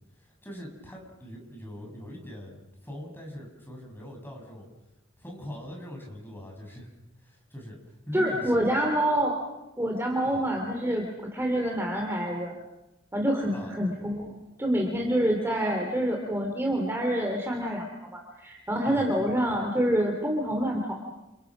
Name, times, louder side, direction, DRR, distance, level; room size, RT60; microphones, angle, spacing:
voice 1, 0.2-4.7 5.2-6.9 7.2-8.6 10.3-10.5 13.5-13.7 18.8-19.0, equal, 10° left, 0 dB, 7.1 m, -42 dB
voice 2, 8.1-9.4 9.8-12.5 13.1-21.1, equal, 10° right, 2 dB, 3.1 m, -27 dB
29.5 x 28.5 x 6.2 m, 0.97 s
head